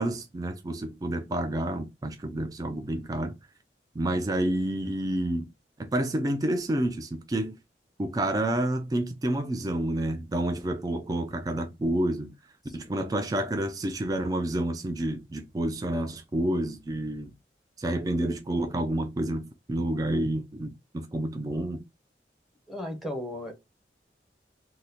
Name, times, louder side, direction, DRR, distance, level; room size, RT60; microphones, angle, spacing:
voice 1, 0.0-3.3 4.0-5.5 5.8-7.6 8.0-12.3 12.7-17.3 17.8-21.8, right 1 dB, 20° right, 0.3 m, -29 dB
voice 2, 12.6-13.3 22.7-23.5, left 1 dB, ahead, 0.8 m, -37 dB
3.7 x 2.0 x 2.7 m
head